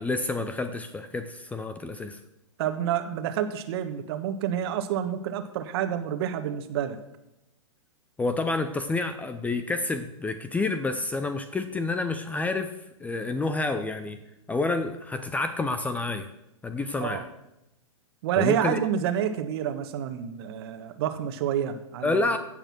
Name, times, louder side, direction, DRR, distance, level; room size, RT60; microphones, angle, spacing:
voice 1, 0.0-2.2 8.2-12.7 13.0-14.2 14.5-16.3 16.6-17.3 18.4-18.8 22.0-22.4, left 3 dB, 10° left, 10 dB, 0.6 m, -29 dB
voice 2, 2.6-7.0 17.0-17.2 18.2-22.4, right 9 dB, 50° right, 9 dB, 1.4 m, -28 dB
16.0 x 6.7 x 6.1 m, 0.91 s
hypercardioid pair, 120°, 17 cm